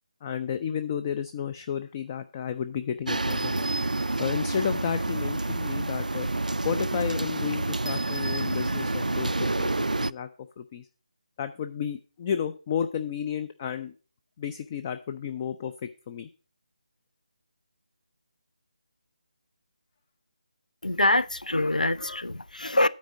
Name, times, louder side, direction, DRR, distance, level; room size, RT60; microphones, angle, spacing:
voice 1, 0.2-3.7 4.2-6.3 6.6-10.3 10.6-10.9 11.4-13.9 14.4-16.3, left 8 dB, 20° left, 0.3 m, -32 dB
sound 1, 3.1-10.1, right 2 dB, 80° right, 0.3 m, -28 dB
voice 2, 20.8-22.9, left 1 dB, 80° left, 0.5 m, -24 dB
9.3 x 4.2 x 6.9 m
figure-of-eight pair, 155°, 4 cm